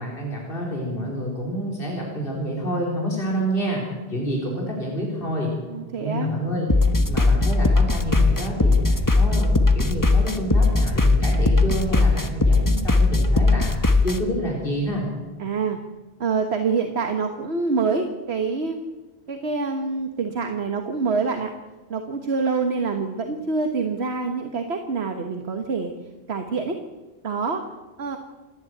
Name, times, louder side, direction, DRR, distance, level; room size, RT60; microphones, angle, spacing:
voice 1, 0.0-3.8 4.1-5.5 5.9-6.7 7.0-13.7 14.0-15.1, equal, 60° left, -2 dB, 4.3 m, -28 dB
voice 2, 5.7-6.3 15.4-15.8 16.2-18.8 19.3-21.5 21.9-25.9 26.3-26.8 27.2-27.6 28.0-28.2, right 4 dB, 75° right, 5 dB, 1.7 m, -26 dB
sound 1, 6.7-14.2, left 3 dB, 20° left, 1.3 m, -19 dB
28.5 x 11.0 x 9.4 m, 1.3 s
omnidirectional pair, 1.1 m